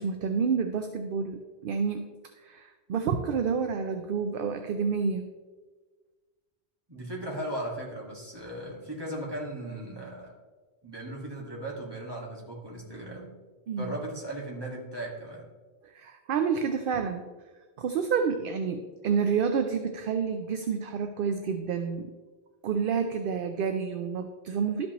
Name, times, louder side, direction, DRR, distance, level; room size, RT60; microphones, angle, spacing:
voice 1, 0.0-2.1 2.4-5.2 13.7-14.0 15.8-17.2 17.8-22.1 22.6-24.9, right 6 dB, 65° right, 7 dB, 0.7 m, -29 dB
voice 2, 6.9-10.3 10.8-13.3 13.8-15.5, right 1 dB, 20° right, -4 dB, 1.8 m, -37 dB
12.5 x 5.3 x 3.0 m, 1.4 s
omnidirectional pair, 1.1 m